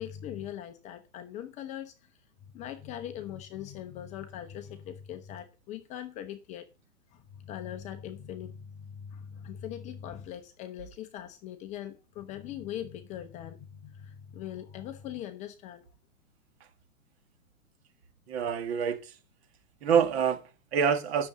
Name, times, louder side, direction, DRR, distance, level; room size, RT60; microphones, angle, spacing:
voice 1, 0.0-2.2 2.5-6.7 7.1-15.9, left 10 dB, 15° left, 0.7 m, -41 dB
voice 2, 18.3-19.2 19.8-21.3, right 7 dB, 50° right, 1.9 m, -27 dB
10.0 x 6.7 x 6.4 m
hypercardioid pair, 145°, 41 cm